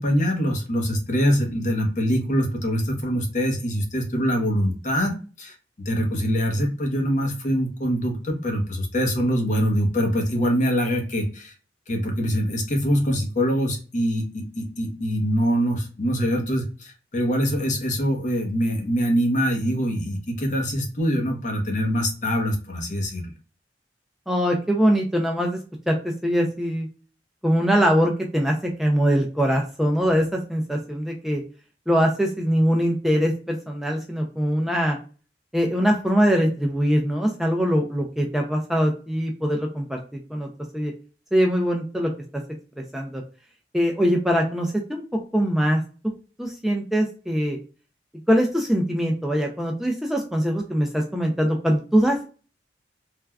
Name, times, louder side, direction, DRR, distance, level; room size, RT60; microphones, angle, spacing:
voice 1, 0.0-5.5 5.8-11.5 11.9-23.3, equal, 45° left, 2 dB, 0.8 m, -24 dB
voice 2, 24.3-25.6 25.9-26.9 27.4-31.4 31.9-35.0 35.5-40.0 40.3-40.5 40.7-40.9 41.3-42.1 42.9-43.2 43.7-45.0 45.3-45.8 46.4-47.6 48.3-52.3, equal, ahead, 0 dB, 0.3 m, -22 dB
3.3 x 2.2 x 2.2 m, 0.37 s
head